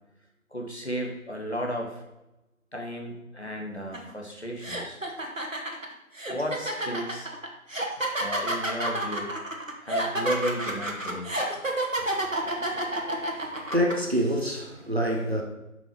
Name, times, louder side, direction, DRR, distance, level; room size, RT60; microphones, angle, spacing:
voice 1, 0.5-2.0 2.7-5.0 6.3-7.3 8.2-9.3 9.8-11.3, equal, 50° left, 1.7 m, -33 dB
sound 1, 3.9-4.1 4.6-13.9, right 1 dB, 65° right, 1.7 m, -29 dB
voice 2, 12.4-13.2 13.7-15.4, equal, 45° right, 1.3 m, -27 dB
7.0 x 6.3 x 4.6 m
figure-of-eight pair, 175°, 41 cm